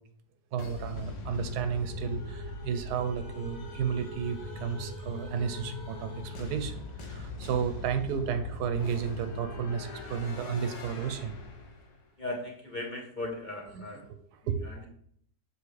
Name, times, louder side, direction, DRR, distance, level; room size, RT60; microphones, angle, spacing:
voice 1, 0.5-11.3 13.8-13.9 14.5-14.9, right 7 dB, 75° right, 8 dB, 1.1 m, -32 dB
sound 1, 0.6-12.0, left 2 dB, 70° left, 1.4 m, -41 dB
voice 2, 12.2-14.1 14.6-14.8, left 2 dB, 35° left, -2 dB, 0.8 m, -38 dB
7.1 x 4.5 x 3.2 m, 0.66 s
omnidirectional pair, 1.8 m